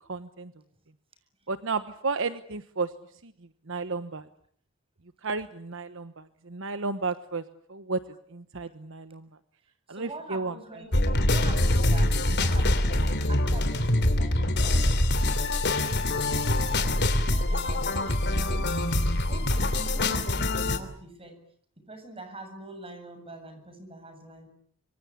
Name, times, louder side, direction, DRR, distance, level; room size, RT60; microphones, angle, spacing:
voice 1, 0.1-0.5 1.5-2.9 3.2-3.3 3.7-4.3 5.2-7.4 7.7-8.0 8.3-9.3 9.9-10.5, right 4 dB, 65° right, 11 dB, 1.2 m, -32 dB
voice 2, 9.9-15.3 15.7-18.5 19.3-21.4 21.9-24.5, right 2 dB, 25° right, 8 dB, 7.6 m, -45 dB
sound 1, 10.9-20.8, left 1 dB, 55° left, 3.0 m, -24 dB
26.0 x 25.0 x 8.7 m, 0.63 s
head